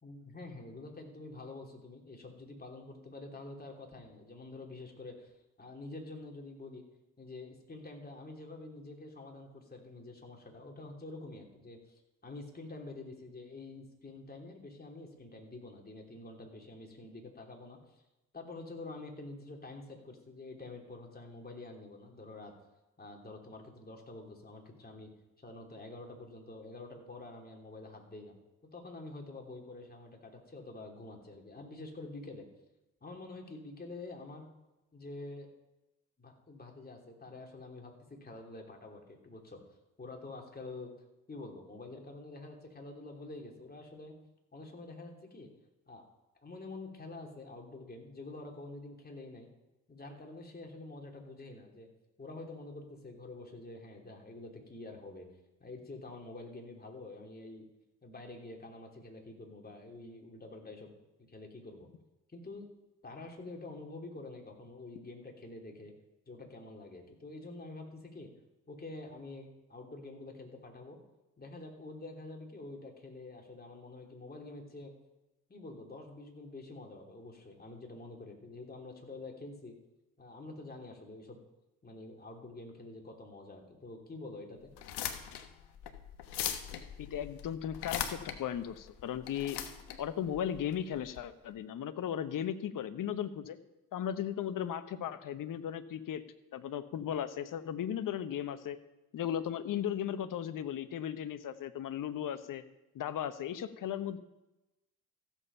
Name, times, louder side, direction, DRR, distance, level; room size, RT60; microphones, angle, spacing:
voice 1, 0.0-5.3 5.6-6.8 7.2-18.0 18.3-22.5 23.0-25.1 25.4-28.4 28.7-32.4 33.0-34.5 34.9-35.5 36.2-39.6 40.0-40.9 41.3-44.2 44.5-45.5 45.9-46.0 46.4-49.5 49.9-51.9 52.2-55.3 55.6-57.6 58.0-60.9 61.3-61.9 62.3-62.7 63.0-65.9 66.3-68.3 68.7-71.0 71.4-74.9 75.5-79.7 80.2-81.4 81.8-84.7, left 2 dB, 20° left, 1 dB, 3.2 m, -47 dB
sound 1, 84.7-91.2, left 9 dB, 65° left, 1.3 m, -40 dB
voice 2, 87.0-89.6 90.0-93.6 93.9-96.2 96.5-98.8 99.1-102.6 102.9-104.2, left 9 dB, 50° left, 12 dB, 1.0 m, -36 dB
15.0 x 7.3 x 5.7 m, 0.99 s
hypercardioid pair, 55°, 43 cm